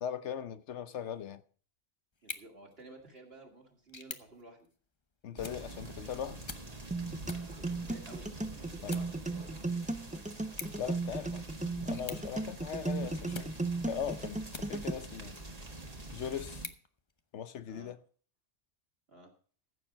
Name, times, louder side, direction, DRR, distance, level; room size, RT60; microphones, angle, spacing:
voice 1, 0.0-1.4 5.2-6.4 8.8-9.0 10.8-11.5 11.9-15.4 16.1-16.7 17.3-18.0, left 8 dB, 80° left, 1.1 m, -39 dB
sound 1, 2.1-15.1 15.6-17.7, left 4 dB, 25° left, 0.8 m, -51 dB
voice 2, 2.2-4.7 7.2-8.3 8.6-9.6 17.7-17.9 19.1-19.3, right 2 dB, 60° right, 2.6 m, -54 dB
sound 2, 5.4-16.7, right 2 dB, 35° right, 1.7 m, -46 dB
sound 3, 6.9-14.9, right 3 dB, 10° right, 0.4 m, -36 dB
15.0 x 7.2 x 5.1 m
omnidirectional pair, 1.2 m